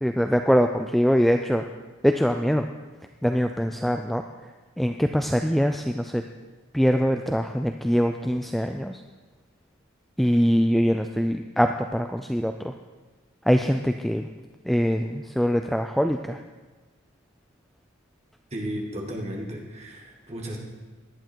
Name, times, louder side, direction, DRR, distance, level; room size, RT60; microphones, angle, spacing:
voice 1, 0.0-1.7 2.0-2.7 3.2-6.2 6.7-9.0 10.2-12.7 13.4-14.3 14.6-16.4, equal, ahead, 6 dB, 0.3 m, -23 dB
voice 2, 18.5-20.6, equal, 30° right, -1 dB, 2.2 m, -34 dB
18.0 x 11.5 x 4.6 m, 1.3 s
head